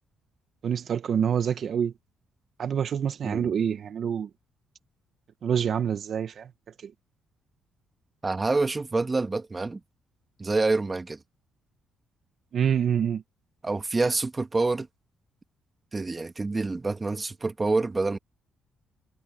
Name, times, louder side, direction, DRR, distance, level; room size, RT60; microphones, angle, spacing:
voice 1, 0.6-1.9 2.6-4.3 5.4-6.5 6.8-6.9 12.5-13.2, right 8 dB, 60° right, 0.9 m, -26 dB
voice 2, 8.2-9.8 10.4-11.2 13.6-14.9 15.9-18.2, right 3 dB, 25° right, 1.7 m, -27 dB
cardioid pair, 90°, 0 cm